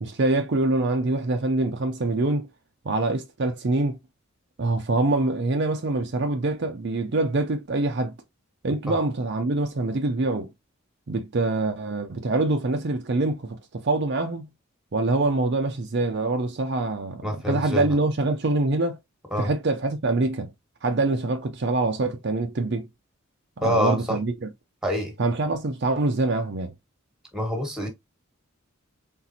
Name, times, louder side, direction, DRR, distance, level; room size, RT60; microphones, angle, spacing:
voice 1, 0.0-2.5 2.8-4.0 4.6-8.1 8.6-10.5 11.1-14.5 14.9-19.0 19.4-20.5 20.8-22.9 23.6-24.5 25.2-26.7, right 2 dB, 50° right, 0.5 m, -25 dB
voice 2, 17.2-18.0 19.3-19.5 23.6-24.2 24.8-25.1 27.3-27.9, left 1 dB, 5° right, 1.4 m, -26 dB
4.1 x 3.6 x 2.8 m
head